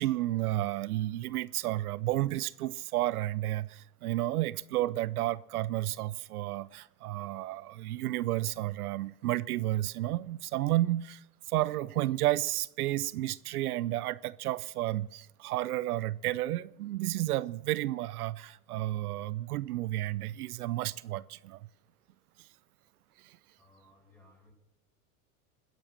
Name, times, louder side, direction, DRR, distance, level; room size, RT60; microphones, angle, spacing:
voice 1, 0.0-21.7 22.4-22.5 23.2-23.4, right 15 dB, 85° right, 0.6 m, -32 dB
voice 2, 23.6-24.5, left 2 dB, 5° left, 6.8 m, -61 dB
21.5 x 10.5 x 6.1 m
hypercardioid pair, 105°, 44 cm